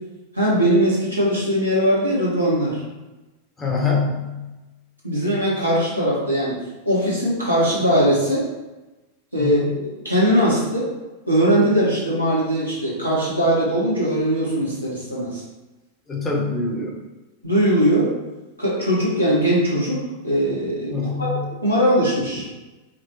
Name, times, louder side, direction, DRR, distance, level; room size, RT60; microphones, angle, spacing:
voice 1, 0.3-2.8 5.0-6.6 6.8-8.4 9.3-9.6 10.0-10.9 11.3-15.4 17.4-18.1 18.6-22.4, equal, 90° right, -6 dB, 1.2 m, -20 dB
voice 2, 3.6-4.4 9.4-9.7 16.1-17.0 20.9-21.5, left 4 dB, 20° left, -2 dB, 0.9 m, -24 dB
4.8 x 2.0 x 3.0 m, 1.1 s
figure-of-eight pair, 90°, 0 cm